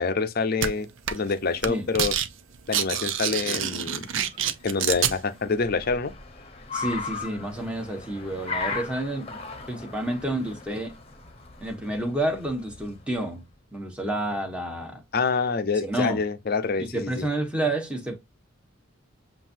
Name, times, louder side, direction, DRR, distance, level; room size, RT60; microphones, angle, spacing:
voice 1, 0.0-2.1 2.7-4.1 4.6-6.1 15.1-17.3, left 4 dB, 45° left, 0.6 m, -26 dB
sound 1, 0.6-0.7 1.1-1.3 1.6-2.3 2.5-5.1, right 9 dB, 65° right, 0.6 m, -26 dB
Car, 3.2-13.4, left 4 dB, 30° left, 1.0 m, -38 dB
voice 2, 6.7-9.4 9.7-10.9 11.6-13.4 13.7-15.0 15.8-16.2 16.8-18.2, right 1 dB, 5° right, 1.2 m, -29 dB
7.5 x 2.7 x 2.6 m
head